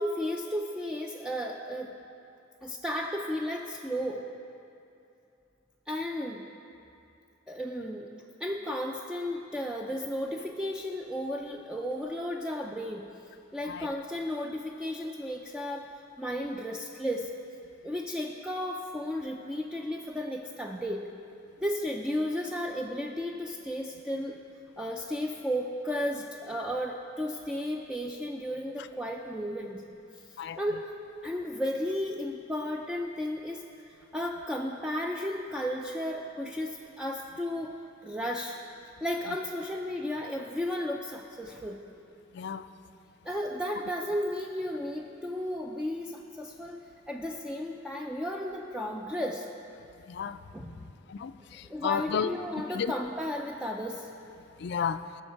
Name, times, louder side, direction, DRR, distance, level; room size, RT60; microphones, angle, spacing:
voice 1, 0.0-1.9 2.6-4.3 5.9-6.5 7.5-8.1 8.4-13.1 13.5-15.9 16.2-17.3 17.8-21.1 21.6-24.4 24.8-29.9 30.3-30.9 31.2-37.7 38.0-38.6 39.0-41.8 43.2-49.5 50.5-50.9 51.6-54.2, equal, 5° right, 0 dB, 0.4 m, -34 dB
voice 2, 50.1-50.4 51.1-52.3 52.7-52.9 54.6-55.0, left 7 dB, 60° left, 12 dB, 0.4 m, -32 dB
17.5 x 6.3 x 4.6 m, 2.7 s
head